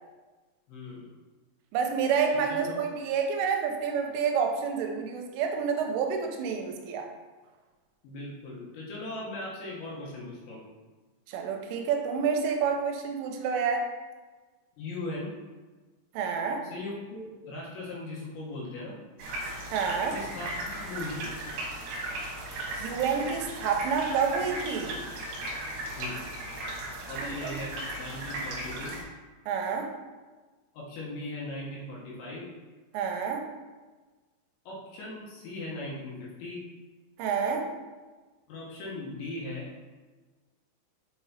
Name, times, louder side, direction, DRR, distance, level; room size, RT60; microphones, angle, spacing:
voice 1, 0.7-1.1 2.5-2.7 8.0-10.6 14.8-15.3 16.6-18.9 20.1-21.3 26.0-26.1 27.1-29.0 30.7-32.5 34.7-36.6 38.5-39.7, left 2 dB, 75° left, -5 dB, 3.2 m, -39 dB
voice 2, 1.7-7.1 11.3-13.9 16.1-16.6 19.7-20.2 22.8-25.0 27.2-27.6 29.5-29.9 32.9-33.4 37.2-37.7, right 6 dB, 90° right, 3 dB, 3.2 m, -28 dB
sound 1, 19.2-29.0, right 1 dB, 70° right, 2.8 m, -37 dB
7.8 x 4.9 x 2.8 m, 1.3 s
omnidirectional pair, 5.7 m